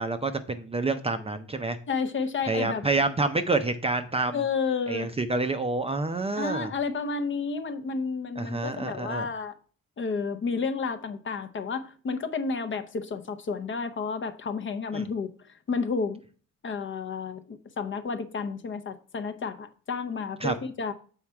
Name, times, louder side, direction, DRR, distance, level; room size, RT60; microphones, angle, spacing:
voice 1, 0.0-1.8 2.5-4.4 4.9-6.7 8.4-9.3 14.9-15.0 20.4-20.5, right 3 dB, 20° right, 0.5 m, -28 dB
voice 2, 1.9-2.9 4.3-5.1 6.4-9.6 10.0-15.3 15.7-16.2 16.6-20.9, left 4 dB, 40° left, 0.7 m, -31 dB
7.3 x 4.4 x 4.6 m
cardioid pair, 145°, 32 cm